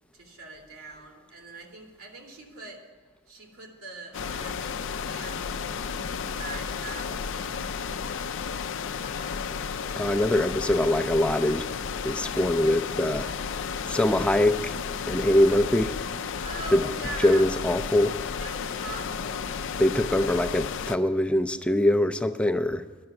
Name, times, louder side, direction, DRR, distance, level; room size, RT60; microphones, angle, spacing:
voice 1, 0.1-2.8 3.3-5.6 6.0-7.9 9.0-9.6 16.4-17.5 18.3-19.6, right 3 dB, 85° right, 0 dB, 2.6 m, -42 dB
sound 1, 4.1-21.0, left 6 dB, 60° left, 0.4 m, -33 dB
voice 2, 10.0-11.6 12.0-13.3 13.9-14.7 15.1-15.9 16.7-16.8 17.2-18.2 19.8-22.8, left 1 dB, 5° left, 9 dB, 0.4 m, -23 dB
10.5 x 7.0 x 7.7 m, 1.5 s
head